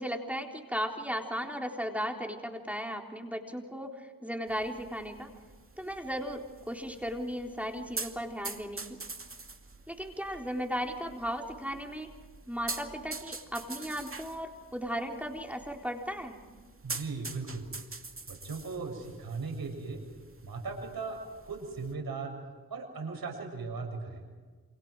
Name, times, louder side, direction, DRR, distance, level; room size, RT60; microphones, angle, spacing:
voice 1, 0.0-5.3 5.8-8.8 9.9-12.1 12.5-16.4, equal, 5° right, 1 dB, 3.9 m, -36 dB
sound 1, 4.5-21.9, right 3 dB, 35° right, 2.5 m, -45 dB
voice 2, 16.8-17.7 18.3-20.0 20.4-22.4 22.7-24.2, right 4 dB, 85° right, 2 dB, 7.0 m, -38 dB
29.5 x 28.0 x 4.9 m, 1.4 s
cardioid pair, 55°, 36 cm